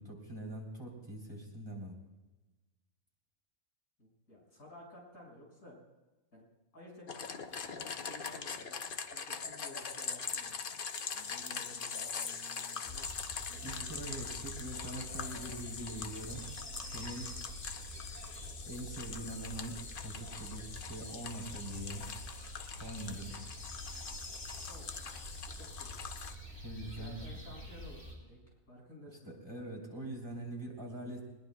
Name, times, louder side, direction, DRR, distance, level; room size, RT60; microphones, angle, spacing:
voice 1, 0.0-2.0 13.6-16.5 16.9-17.4 18.6-22.1 22.8-23.4 26.6-27.2 29.4-31.2, right 1 dB, 15° right, -2 dB, 3.4 m, -43 dB
voice 2, 4.0-5.8 6.3-6.5 6.7-8.8 9.1-10.6 11.1-13.1 13.5-13.9 14.2-14.3 24.7-26.0 27.0-28.4 28.7-29.3, equal, 75° left, -3 dB, 6.3 m, -54 dB
sound 1, 7.1-26.3, left 6 dB, 50° left, 0.7 m, -42 dB
sound 2, 12.9-28.1, equal, 10° left, 4.0 m, -47 dB
21.5 x 20.5 x 2.3 m, 1.1 s
omnidirectional pair, 1.5 m